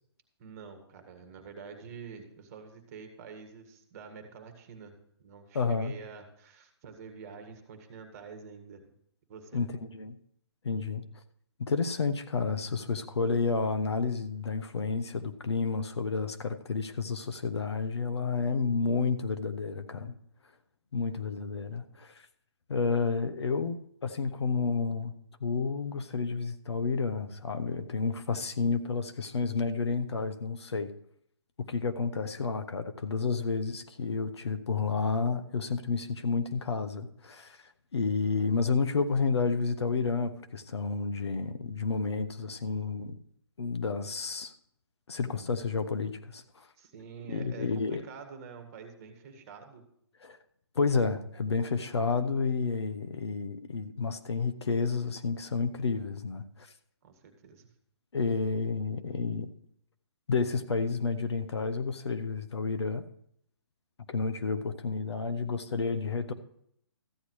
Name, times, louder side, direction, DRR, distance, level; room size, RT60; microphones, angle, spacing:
voice 1, 0.4-8.9 9.3-9.6 46.8-49.9 57.0-57.7, right 6 dB, 35° right, 6 dB, 1.6 m, -47 dB
voice 2, 5.5-6.0 9.5-10.2 10.6-11.0 11.6-20.1 20.9-22.1 22.7-25.1 25.4-30.9 31.6-37.6 37.9-43.2 43.6-44.5 45.1-46.7 47.3-48.0 50.2-50.4 50.7-56.7 58.1-59.5 60.3-63.0 64.1-66.3, left 4 dB, 75° left, 9 dB, 0.9 m, -30 dB
14.0 x 9.6 x 3.1 m, 0.69 s
figure-of-eight pair, 140°, 14 cm